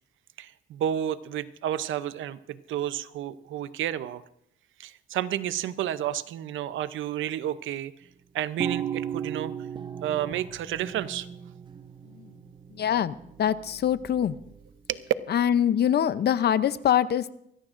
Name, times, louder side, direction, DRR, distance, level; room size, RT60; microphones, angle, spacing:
voice 1, 0.4-4.2 4.8-7.9 8.3-9.5 10.0-11.3 14.9-15.0, right 11 dB, 80° right, 15 dB, 0.7 m, -31 dB
sound 1, 8.6-14.7, right 8 dB, 25° right, 0.7 m, -37 dB
voice 2, 12.7-14.4 15.3-17.3, left 9 dB, 55° left, 15 dB, 0.6 m, -24 dB
24.0 x 14.0 x 2.5 m, 0.75 s
cardioid pair, 90°, 20 cm